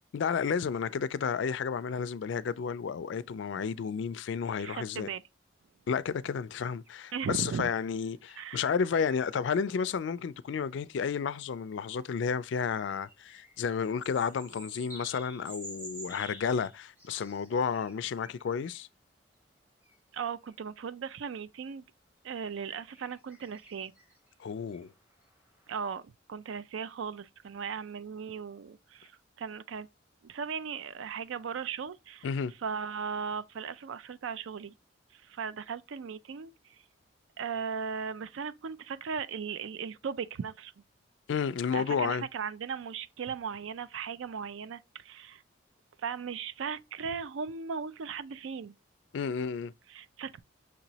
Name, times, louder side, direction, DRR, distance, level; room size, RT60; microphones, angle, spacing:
voice 1, 0.1-5.1 5.9-18.9 24.4-24.9 32.2-32.5 41.3-42.3 49.1-49.7, left 6 dB, 65° left, 0.3 m, -31 dB
voice 2, 4.6-5.2 7.1-7.7 8.4-8.7 20.1-21.8 22.2-23.9 25.7-29.9 30.2-32.3 32.6-34.7 35.1-36.8 37.4-40.7 41.7-45.4 46.0-48.7 49.9-50.4, right 6 dB, 75° right, 0.4 m, -37 dB
sound 1, 6.8-6.9 7.7-9.4 10.0-10.1 12.5-18.8 19.8-20.0 20.4-20.5 22.4-25.8, equal, 10° right, 1.0 m, -50 dB
6.0 x 3.0 x 2.7 m
head